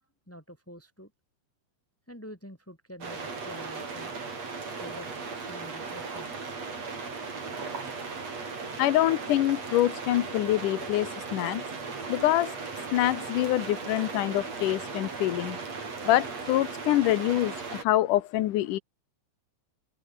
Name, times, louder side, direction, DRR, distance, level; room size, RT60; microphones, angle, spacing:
voice 1, 0.3-1.1 2.1-4.1 4.8-5.2 5.5-6.6, equal, 5° left, 6.3 m, -46 dB
sound 1, 3.0-17.8, right 4 dB, 55° right, 6.0 m, -37 dB
voice 2, 8.8-11.6 12.1-12.5 12.9-15.6 16.0-18.8, left 14 dB, 85° left, 2.6 m, -25 dB
open air
omnidirectional pair, 3.6 m